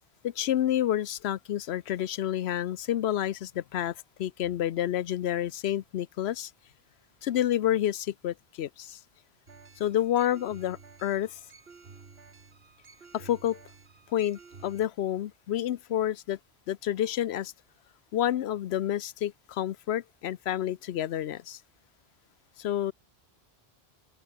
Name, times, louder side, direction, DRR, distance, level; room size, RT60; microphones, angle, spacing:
voice 1, 0.2-3.9 4.2-6.5 7.2-9.0 9.8-11.4 13.1-13.6 14.1-16.4 16.7-17.5 18.1-21.6 22.6-22.9, left 11 dB, 80° left, 0.9 m, -29 dB
sound 1, 9.5-14.8, right 5 dB, 70° right, 1.9 m, -52 dB
open air
omnidirectional pair, 1.1 m